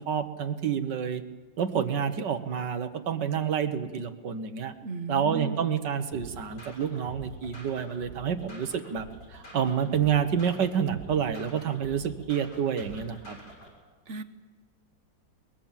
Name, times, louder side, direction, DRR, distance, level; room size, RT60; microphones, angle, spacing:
voice 1, 0.1-1.2 1.6-4.7 5.1-9.1 9.3-13.4, right 8 dB, 65° right, 9 dB, 1.8 m, -28 dB
voice 2, 4.8-5.7 14.1-14.2, right 3 dB, 45° right, 10 dB, 1.1 m, -35 dB
sound 1, 6.1-13.7, right 1 dB, 60° left, 7.0 m, -46 dB
22.5 x 22.0 x 7.4 m, 1.3 s
omnidirectional pair, 2.1 m